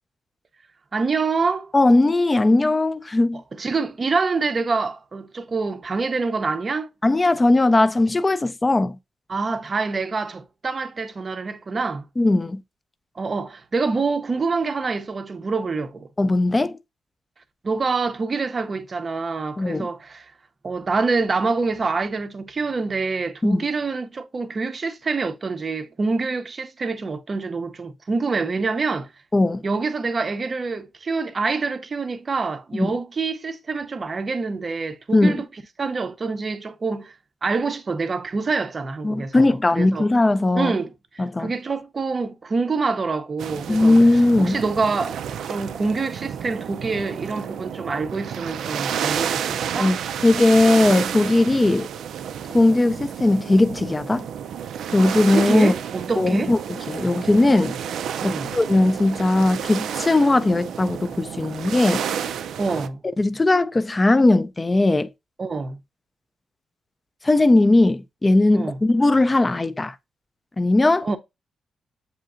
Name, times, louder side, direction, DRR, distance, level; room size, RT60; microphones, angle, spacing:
voice 1, 0.9-1.7 3.6-6.9 9.3-12.1 13.2-16.1 17.6-20.2 20.6-29.1 29.6-35.5 35.8-37.1 37.4-40.1 40.5-44.0 44.4-45.2 45.5-49.9 55.3-56.5 58.2-58.5 62.6-63.0 65.4-65.8 68.5-68.8 71.0-71.2, right 4 dB, 40° right, 0.5 m, -26 dB
voice 2, 1.7-3.4 7.0-9.0 12.2-12.6 16.2-16.8 19.6-19.9 23.4-23.6 29.3-29.6 32.7-33.0 35.1-35.4 39.0-40.7 41.2-41.5 43.7-44.6 49.8-50.0 50.2-51.9 52.5-54.3 54.9-55.7 56.2-56.6 56.9-57.8 58.2-62.0 63.2-65.1 67.2-70.0 70.6-71.1, left 2 dB, 20° left, 0.4 m, -18 dB
sound 1, 43.4-62.9, right 8 dB, 85° right, 0.3 m, -30 dB
7.5 x 2.8 x 2.4 m
cardioid pair, 100°, 0 cm